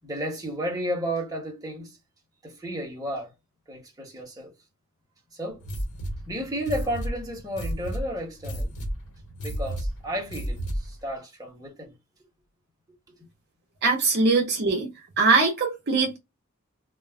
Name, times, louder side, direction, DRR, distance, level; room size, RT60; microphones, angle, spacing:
voice 1, 0.0-2.0 2.4-3.3 3.7-4.5 5.3-5.6 6.3-8.7 9.4-11.9, equal, 15° right, 1.0 m, -32 dB
sound 1, 5.6-11.0, right 1 dB, 85° left, 1.2 m, -33 dB
voice 2, 13.8-14.9 15.2-16.2, right 3 dB, 50° right, 0.7 m, -21 dB
2.4 x 2.2 x 3.2 m
head